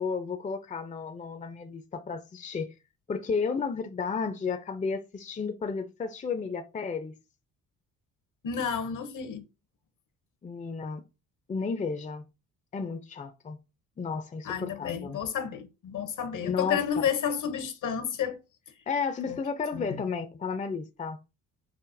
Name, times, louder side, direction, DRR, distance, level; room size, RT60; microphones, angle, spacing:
voice 1, 0.0-2.7 3.1-7.2 10.4-11.0 11.5-12.3 12.7-13.6 14.0-15.2 16.4-16.8 18.9-21.2, left 5 dB, 20° left, 0.5 m, -32 dB
voice 2, 8.4-9.4 14.4-18.4 19.3-19.4 19.7-20.0, left 7 dB, 60° left, 0.8 m, -31 dB
5.7 x 2.0 x 2.6 m
supercardioid pair, 65°, 36 cm